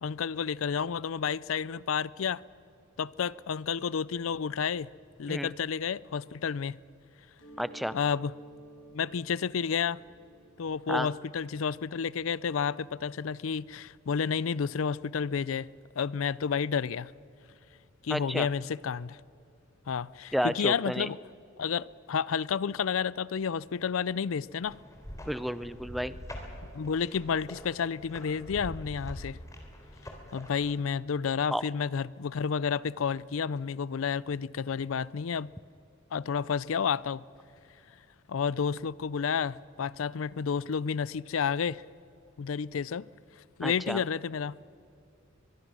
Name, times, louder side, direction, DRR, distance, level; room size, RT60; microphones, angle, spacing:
voice 1, 0.0-2.4 3.0-4.9 5.2-6.8 7.9-8.3 8.9-10.0 10.6-15.7 16.0-17.1 18.0-19.2 19.9-21.2 21.6-24.8 26.7-29.4 30.3-35.5 36.1-37.2 38.3-41.8 42.4-43.1 43.6-44.6, left 6 dB, 80° left, 0.5 m, -30 dB
Mallet percussion, 7.4-12.9, right 2 dB, 65° left, 6.0 m, -54 dB
voice 2, 7.6-8.0 10.9-11.1 18.1-18.5 20.3-21.1 25.2-26.2 31.5-31.6 43.6-44.0, equal, ahead, 0.5 m, -31 dB
sound 1, 24.6-30.7, equal, 15° left, 3.1 m, -44 dB
23.5 x 22.0 x 6.2 m
head